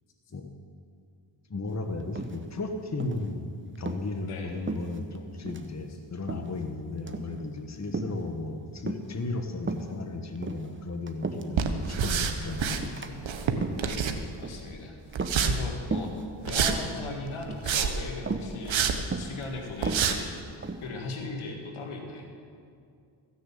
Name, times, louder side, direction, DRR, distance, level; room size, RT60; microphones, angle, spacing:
voice 1, 1.5-13.2, left 2 dB, 35° left, 5 dB, 1.4 m, -35 dB
sound 1, 2.2-2.6 3.0-3.3 3.8-4.1 4.7-5.2 5.5-5.7 6.3-6.6 7.0-7.3 7.9-8.2 8.9-9.2 9.6-9.9 10.4-11.6 12.0-12.3 12.8-13.1 13.5-13.9 14.4-14.7 15.1-15.6 15.9-16.2 16.6-16.9 17.5-17.8 18.3-18.5 19.1-19.4 19.8-20.9, right 3 dB, 25° right, 1.0 m, -34 dB
voice 2, 4.2-4.5 13.7-14.9 15.4-16.1 16.5-20.5 20.8-22.3, left 3 dB, 85° left, 2 dB, 1.9 m, -38 dB
sound 2, 11.6-12.8 13.2-14.5 15.1-15.5 16.4-16.8 17.4-18.1 18.7-19.0 19.4-19.5 19.8-20.2, right 7 dB, 70° right, 1.2 m, -27 dB
15.0 x 6.7 x 8.5 m, 2.3 s
cardioid pair, 55°, 48 cm